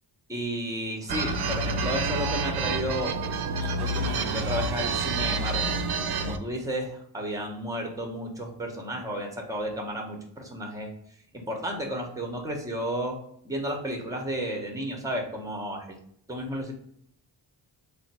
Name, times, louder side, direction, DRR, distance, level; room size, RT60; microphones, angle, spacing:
voice 1, 0.3-3.1 3.8-5.8 6.2-10.9 11.3-13.2 13.4-16.0 16.3-16.7, equal, 10° right, 1 dB, 0.8 m, -32 dB
sound 1, 1.1-6.4, right 3 dB, 60° right, 0.5 m, -28 dB
3.7 x 2.2 x 4.1 m, 0.71 s
wide cardioid pair, 95°, 45 cm